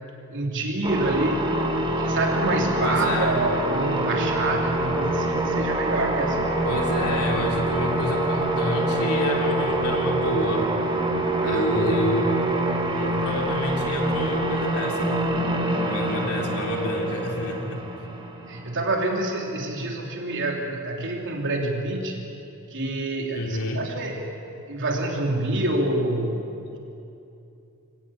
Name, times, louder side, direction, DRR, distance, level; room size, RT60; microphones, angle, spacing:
voice 1, 0.3-1.6 2.0-6.4 11.4-11.7 15.9-16.3 18.5-22.3 22.7-24.2 24.7-26.8, right 2 dB, 55° right, 1 dB, 3.3 m, -27 dB
sound 1, 0.8-19.1, right 1 dB, 20° right, 2.0 m, -26 dB
voice 2, 2.8-3.4 6.6-10.7 11.4-12.3 13.0-15.1 15.8-17.8 23.3-23.8, left 1 dB, 85° left, 1 dB, 3.5 m, -28 dB
Piano, 3.7-17.4, right 1 dB, 5° left, 3.6 m, -35 dB
24.0 x 17.5 x 8.8 m, 2.8 s
head